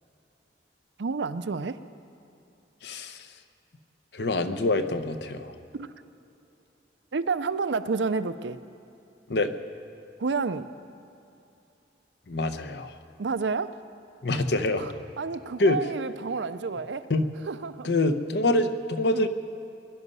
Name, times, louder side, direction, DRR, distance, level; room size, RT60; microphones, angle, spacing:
voice 1, 1.0-1.8 5.7-5.9 7.1-8.6 10.2-10.7 13.2-13.8 14.8-17.1 17.5-17.9 19.1-19.3, right 4 dB, 75° right, 13 dB, 0.5 m, -30 dB
voice 2, 2.8-3.3 4.1-5.5 9.3-9.5 12.3-12.9 14.2-14.9 15.6-15.8 17.1-17.3 17.8-19.3, left 2 dB, 65° left, 9 dB, 0.8 m, -25 dB
22.0 x 11.0 x 5.5 m, 2.7 s
head